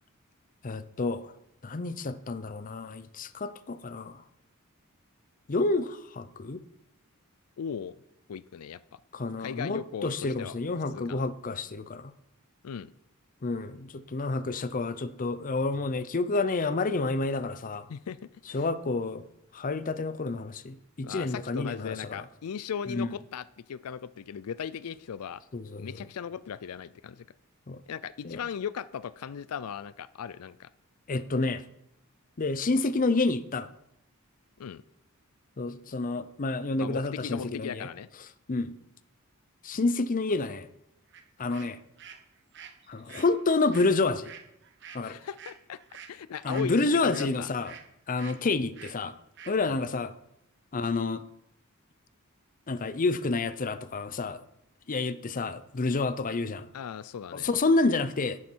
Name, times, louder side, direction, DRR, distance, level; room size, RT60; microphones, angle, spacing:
voice 1, 0.6-1.3 1.6-4.2 5.5-6.6 9.1-12.1 13.4-17.9 18.5-19.2 19.5-22.2 22.9-23.1 25.5-25.9 27.7-27.8 28.2-28.4 31.1-31.6 32.4-33.7 35.6-37.9 38.5-38.7 39.6-40.7 41.4-41.8 42.9-44.3 44.9-45.2 46.4-47.7 48.1-49.1 49.5-50.1 50.7-51.2 52.7-54.4 54.9-56.7 57.3-58.4, left 3 dB, 40° left, 13 dB, 0.6 m, -29 dB
voice 2, 7.6-7.9 8.3-9.0 9.4-10.6 10.9-11.2 12.6-12.9 17.9-18.7 21.0-25.4 25.8-27.2 27.9-30.7 34.6-34.8 36.8-38.1 45.0-45.8 46.1-47.5 49.6-49.8 56.7-57.5, left 7 dB, 85° left, 17 dB, 0.4 m, -38 dB
sound 1, 41.1-41.2 41.5-47.9 48.2-48.4 48.7-49.0 49.4-49.6, right 7 dB, 55° right, 1.2 m, -48 dB
11.0 x 9.6 x 4.6 m, 0.81 s
head